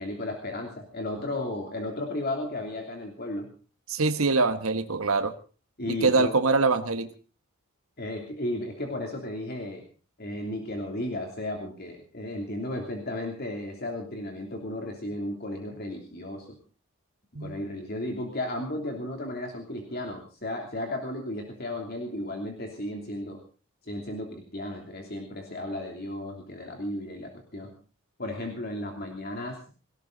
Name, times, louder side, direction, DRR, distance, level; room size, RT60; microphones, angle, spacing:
voice 1, 0.0-3.5 5.8-6.3 8.0-9.8 10.2-16.6 17.4-23.4 23.8-27.7 28.2-29.6, left 1 dB, 45° left, 2 dB, 3.1 m, -34 dB
voice 2, 3.9-5.3 5.9-7.1 17.3-17.6, right 3 dB, 85° right, 9 dB, 1.4 m, -24 dB
19.0 x 18.0 x 4.0 m, 0.37 s
head